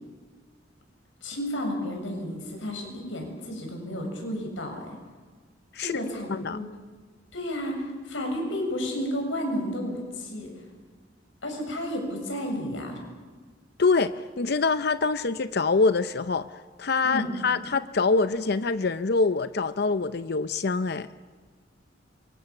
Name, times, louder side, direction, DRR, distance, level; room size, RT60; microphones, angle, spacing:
voice 1, 1.2-4.8 5.8-6.7 7.3-10.5 11.4-13.0 17.0-17.3, equal, 85° left, 3 dB, 7.1 m, -32 dB
voice 2, 6.3-6.6 13.8-16.5 16.8-21.1, left 4 dB, 55° left, 12 dB, 0.7 m, -25 dB
27.5 x 24.5 x 7.2 m, 1.4 s
head